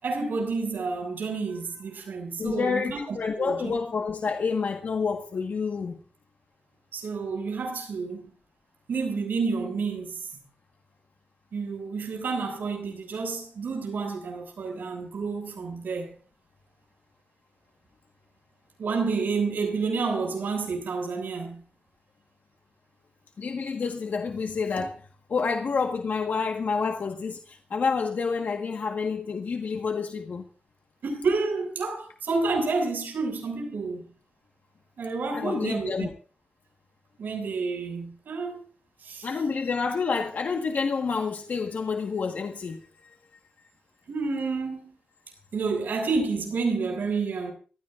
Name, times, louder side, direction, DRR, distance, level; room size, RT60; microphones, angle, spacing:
voice 1, 0.0-3.7 6.9-8.3 8.9-10.2 11.5-16.1 18.8-21.6 31.0-34.0 35.0-36.1 37.2-38.6 39.0-39.3 44.1-44.9 45.5-47.5, right 4 dB, 80° right, 6.8 m, -29 dB
voice 2, 2.4-6.0 23.4-30.4 35.3-36.1 39.2-42.8, left 5 dB, 65° left, 1.6 m, -28 dB
24.0 x 16.0 x 2.6 m
wide cardioid pair, 95°, 3 cm